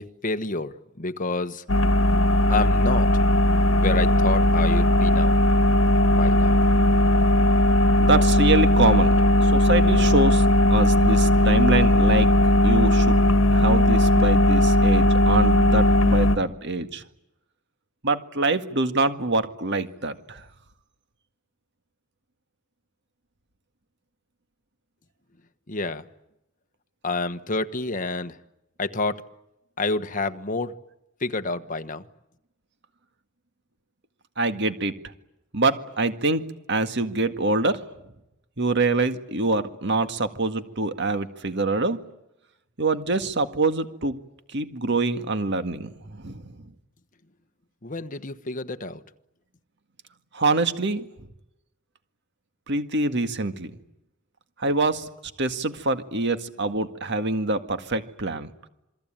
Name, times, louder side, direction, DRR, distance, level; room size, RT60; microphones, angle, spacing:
voice 1, 0.0-1.6 2.5-3.1 3.7-5.4 6.1-6.6 25.7-26.0 27.0-28.3 28.8-29.2 29.8-30.7 31.2-32.0 47.8-49.0, left 3 dB, 40° left, 1.3 m, -28 dB
sound 1, 1.7-16.4, left 1 dB, 75° left, 1.6 m, -18 dB
voice 2, 8.0-9.1 9.4-13.2 13.5-17.0 18.0-20.4 34.4-34.9 35.5-37.8 38.6-42.0 42.8-44.2 44.5-46.6 50.3-51.1 52.7-53.8 54.6-55.1 55.4-58.5, right 2 dB, 60° right, 2.0 m, -25 dB
28.0 x 22.5 x 9.0 m
head